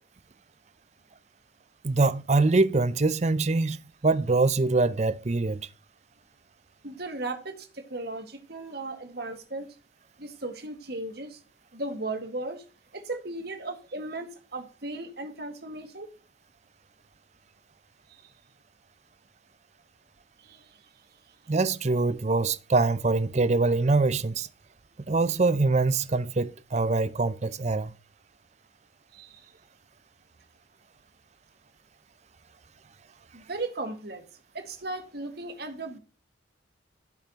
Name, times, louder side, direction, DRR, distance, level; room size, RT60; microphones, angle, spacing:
voice 1, 1.8-3.8 4.0-5.6 21.5-24.5 25.1-27.9, right 3 dB, 35° right, 0.5 m, -24 dB
voice 2, 6.8-9.7 10.2-11.4 11.7-12.6 12.9-16.1 18.1-18.3 20.4-20.9 29.1-29.5 33.3-34.2 34.5-36.0, right 2 dB, 55° right, 1.8 m, -36 dB
15.5 x 5.7 x 2.9 m
head